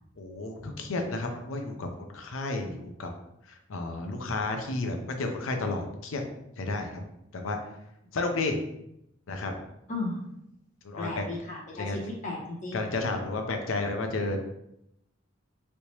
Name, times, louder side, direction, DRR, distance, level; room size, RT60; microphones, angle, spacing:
voice 1, 0.2-1.9 2.1-3.1 3.7-6.2 6.6-7.0 7.3-7.6 8.1-8.6 9.3-9.5 10.8-11.2 11.8-12.0 12.7-14.4, left 2 dB, 75° left, 4 dB, 0.5 m, -31 dB
voice 2, 9.9-10.2 11.0-12.9, left 2 dB, 40° left, -4 dB, 1.0 m, -35 dB
3.2 x 2.8 x 2.9 m, 0.82 s
head